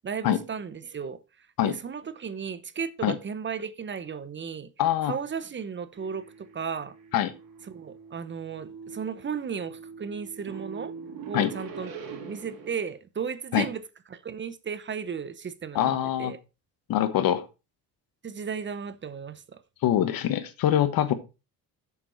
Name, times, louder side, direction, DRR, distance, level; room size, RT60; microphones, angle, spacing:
voice 1, 0.0-4.7 5.0-7.0 7.7-10.9 11.3-12.0 12.3-13.8 14.1-16.4 18.2-19.6, right 6 dB, 30° right, 0.8 m, -35 dB
voice 2, 4.8-5.1 7.1-7.3 11.3-11.5 13.5-13.6 15.7-16.3 16.9-17.5 19.8-21.1, left 11 dB, 75° left, 1.3 m, -24 dB
sound 1, 5.9-12.8, right 5 dB, 75° right, 2.7 m, -43 dB
7.5 x 6.9 x 4.6 m
cardioid pair, 105°, 36 cm